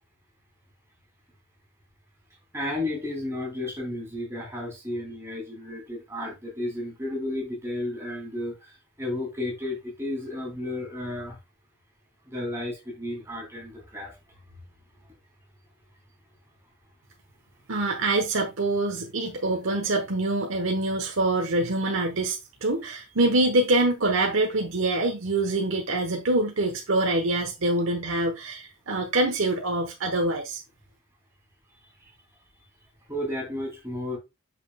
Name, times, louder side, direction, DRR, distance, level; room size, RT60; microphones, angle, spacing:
voice 1, 2.5-11.4 12.3-14.1 33.1-34.2, left 1 dB, 15° right, 2.8 m, -33 dB
voice 2, 17.7-30.6, right 2 dB, 80° right, 1.1 m, -25 dB
7.5 x 6.2 x 2.3 m
head